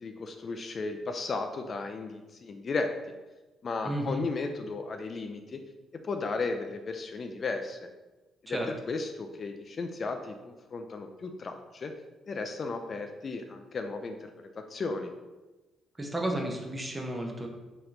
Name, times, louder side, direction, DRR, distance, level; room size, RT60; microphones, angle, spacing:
voice 1, 0.0-2.9 3.6-5.6 6.0-7.9 8.4-8.6 8.9-11.9 12.3-14.3 14.5-15.1, left 3 dB, 45° left, 5 dB, 0.3 m, -35 dB
voice 2, 3.8-4.2 8.5-8.7 16.0-17.5, right 1 dB, 15° right, 1 dB, 0.7 m, -32 dB
3.4 x 2.9 x 3.7 m, 1.1 s
cardioid pair, 90°, 0 cm